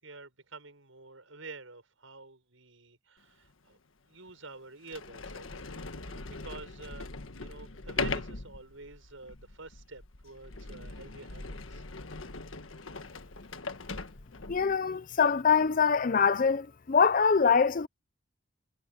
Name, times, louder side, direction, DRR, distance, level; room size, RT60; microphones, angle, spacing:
voice 1, 0.0-3.8 4.1-7.1 7.4-11.8, right 3 dB, 85° right, 7.0 m, -49 dB
Sliding door, 3.4-3.5 4.3-4.4 4.8-14.8, left 3 dB, 80° left, 1.5 m, -40 dB
voice 2, 14.5-17.9, left 6 dB, 45° left, 0.5 m, -24 dB
head